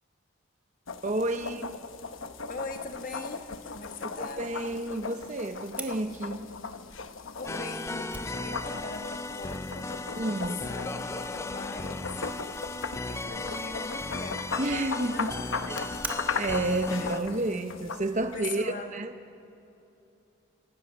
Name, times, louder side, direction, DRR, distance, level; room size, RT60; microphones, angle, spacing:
sound 1, 0.9-18.4, left 5 dB, 85° left, 1.0 m, -38 dB
voice 1, 1.0-1.8 4.2-6.4 10.2-10.6 14.6-15.3 15.7-19.1, right 2 dB, 35° right, 7 dB, 0.7 m, -31 dB
voice 2, 2.5-3.4 3.7-4.5 7.4-10.0 10.4-11.0 11.4-12.2 12.9-14.5 14.9-15.8 17.0-17.1 18.2-19.0, left 3 dB, 45° left, 5 dB, 1.6 m, -41 dB
Fire, 5.8-18.3, right 2 dB, 10° right, 1.2 m, -48 dB
sound 2, 7.4-17.2, left 2 dB, 15° left, 0.5 m, -36 dB
30.0 x 17.5 x 6.4 m, 2.9 s
head